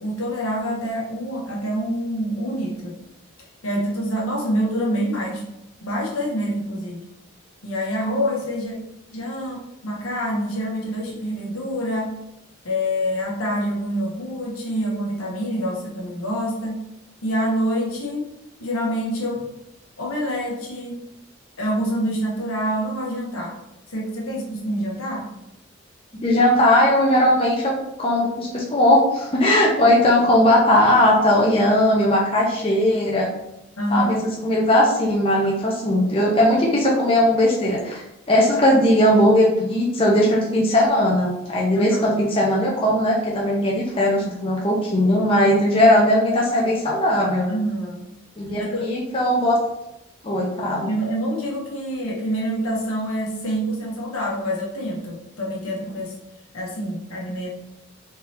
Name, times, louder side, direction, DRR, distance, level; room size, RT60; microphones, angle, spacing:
voice 1, 0.0-3.0 3.6-5.5 5.8-7.1 7.6-8.7 9.1-12.1 12.6-16.8 17.2-18.3 18.6-19.4 20.0-21.0 21.6-23.6 23.9-25.3 29.9-30.0 33.8-34.3 41.7-42.2 47.5-48.1 48.6-48.9 50.8-56.2 56.5-57.5, equal, 80° left, -2 dB, 1.1 m, -26 dB
voice 2, 26.2-27.7 28.0-33.3 33.9-34.2 34.4-47.5 48.4-49.6 50.2-50.9, left 1 dB, 25° left, -4 dB, 0.6 m, -18 dB
3.7 x 3.2 x 2.8 m, 0.87 s
head